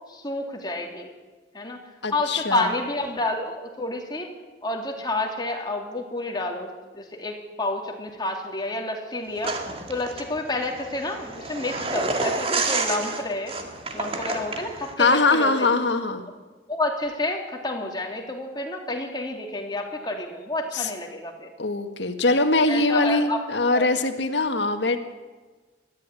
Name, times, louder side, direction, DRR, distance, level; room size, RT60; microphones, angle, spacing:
voice 1, 0.1-1.1 1.5-1.8 2.1-4.3 4.6-6.7 6.9-9.6 9.9-13.5 13.9-15.7 16.7-21.5 22.7-23.4 23.7-23.8, left 2 dB, 25° left, 2 dB, 3.0 m, -29 dB
voice 2, 2.0-2.7 15.0-16.2 20.7-20.9 21.6-25.0, left 3 dB, 75° left, 7 dB, 1.8 m, -22 dB
sound 1, 9.4-14.9, right 3 dB, 30° right, 2.2 m, -29 dB
19.5 x 14.5 x 9.9 m, 1.3 s
head